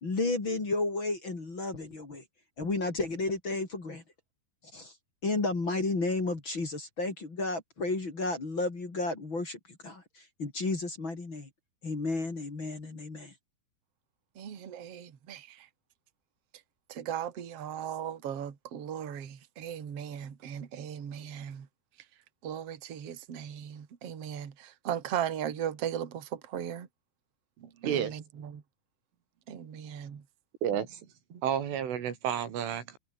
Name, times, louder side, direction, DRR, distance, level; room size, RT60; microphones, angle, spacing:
voice 1, 0.0-2.2 2.6-4.0 4.7-4.9 5.2-10.0 10.4-11.5 11.8-13.3, left 3 dB, 25° left, 3.9 m, -32 dB
voice 2, 14.3-15.7 16.9-21.7 22.4-26.9 27.8-28.6 29.5-30.3 31.3-31.4, right 9 dB, 40° right, 2.7 m, -37 dB
voice 3, 27.6-28.1 30.6-31.0 31.4-33.0, right 9 dB, 90° right, 5.8 m, -31 dB
omnidirectional pair, 5.5 m